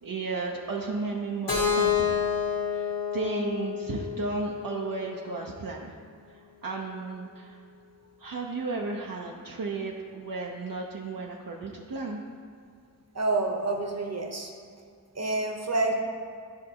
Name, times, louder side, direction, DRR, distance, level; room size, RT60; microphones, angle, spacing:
voice 1, 0.0-2.2 2.7-5.9 6.3-7.6 8.2-12.2, right 3 dB, 70° right, -1 dB, 0.7 m, -34 dB
Keyboard (musical), 1.5-5.4, left 7 dB, 90° left, 1.5 m, -29 dB
voice 2, 13.1-14.5 15.1-15.9, right 2 dB, 50° right, 2 dB, 1.0 m, -28 dB
11.5 x 5.2 x 2.9 m, 2.2 s
wide cardioid pair, 65°, 34 cm